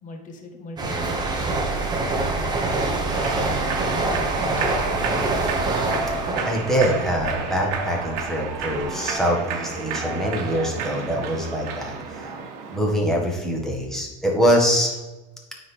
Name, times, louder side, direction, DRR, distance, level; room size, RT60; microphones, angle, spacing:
voice 1, 0.0-1.8 2.3-5.3, left 3 dB, 40° left, 3 dB, 1.3 m, -40 dB
sound 1, 0.8-8.2 8.5-8.8, right 2 dB, 20° right, 1.2 m, -25 dB
Human voice / Clapping / Cheering, 3.1-12.8, right 5 dB, 70° right, 1.1 m, -31 dB
voice 2, 6.4-11.9 12.7-15.0, equal, ahead, -1 dB, 1.6 m, -23 dB
9.3 x 4.0 x 3.5 m, 1.1 s
supercardioid pair, 115°, 21 cm